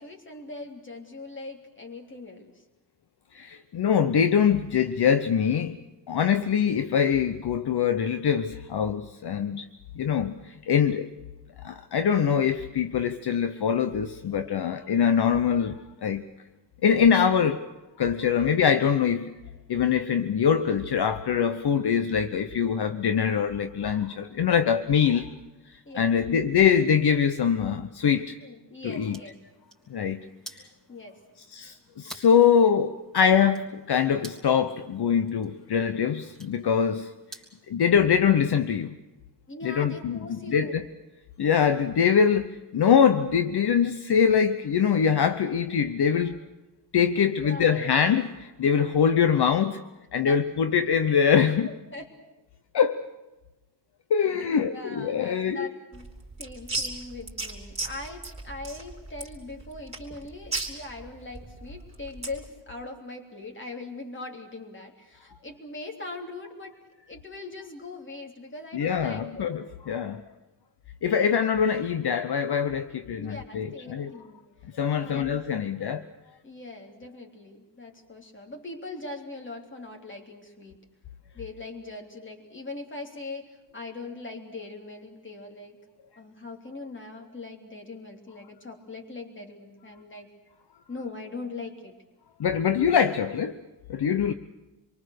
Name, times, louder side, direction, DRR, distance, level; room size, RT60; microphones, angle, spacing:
voice 1, 0.0-2.5 25.8-26.1 28.4-29.4 30.9-31.2 32.9-33.0 39.5-40.9 47.4-48.0 50.3-50.4 51.6-52.1 54.2-56.1 56.4-66.8 67.1-69.5 73.1-74.5 75.0-75.3 76.4-80.8 81.3-85.8 86.2-90.3 90.9-91.9, left 2 dB, 30° left, 2 dB, 3.4 m, -41 dB
voice 2, 3.3-5.8 6.1-9.7 10.0-11.1 11.6-16.3 16.8-17.6 18.0-19.3 19.7-25.3 25.9-28.4 28.8-29.2 29.9-30.2 31.5-37.1 37.7-38.9 39.6-40.8 41.4-46.4 46.9-49.8 50.1-51.7 52.7-53.0 54.1-55.7 68.7-70.2 71.0-74.1 74.7-76.0 92.4-93.6 93.9-94.3, left 7 dB, 65° left, 9 dB, 1.0 m, -23 dB
sound 1, 28.8-37.7, right 1 dB, ahead, 3.4 m, -51 dB
sound 2, 55.9-62.5, right 3 dB, 15° right, 3.8 m, -36 dB
27.0 x 23.5 x 6.7 m, 1.1 s
wide cardioid pair, 175°, 42 cm